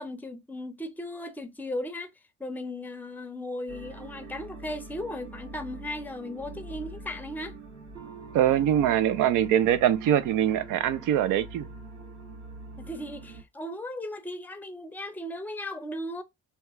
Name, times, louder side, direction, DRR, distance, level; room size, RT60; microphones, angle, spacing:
voice 1, 0.0-2.1 2.4-7.6 12.8-16.2, left 1 dB, 5° left, 0.5 m, -36 dB
sound 1, 3.7-13.4, right 3 dB, 70° right, 1.5 m, -44 dB
voice 2, 8.3-11.7, right 10 dB, 90° right, 0.5 m, -23 dB
2.9 x 2.2 x 3.4 m
cardioid pair, 90°, 30 cm